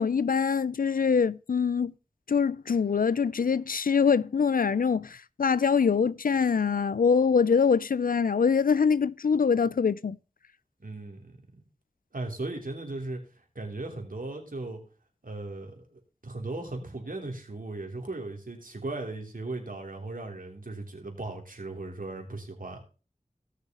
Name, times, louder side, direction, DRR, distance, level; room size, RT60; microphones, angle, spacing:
voice 1, 0.0-1.9 2.3-10.2, left 6 dB, 90° left, 0.4 m, -24 dB
voice 2, 10.8-11.4 12.1-13.2 13.5-14.8 15.2-22.8, right 2 dB, 80° right, 3.1 m, -37 dB
17.5 x 6.6 x 2.9 m
wide cardioid pair, 60°, 14 cm